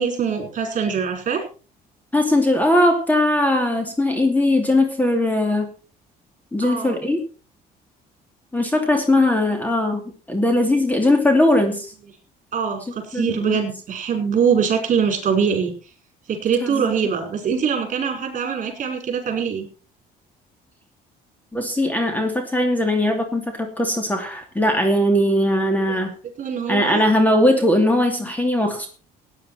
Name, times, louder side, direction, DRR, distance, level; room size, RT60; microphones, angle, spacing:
voice 1, 0.0-1.4 6.6-7.0 12.5-15.7 16.3-19.7 26.4-27.1, right 6 dB, 45° right, 4 dB, 5.6 m, -23 dB
voice 2, 2.1-5.7 6.5-7.2 8.5-11.9 13.1-13.6 16.6-16.8 21.5-26.1 26.7-28.9, left 1 dB, 10° left, 5 dB, 2.7 m, -19 dB
16.5 x 10.0 x 4.4 m, 0.36 s
cardioid pair, 110°, 17 cm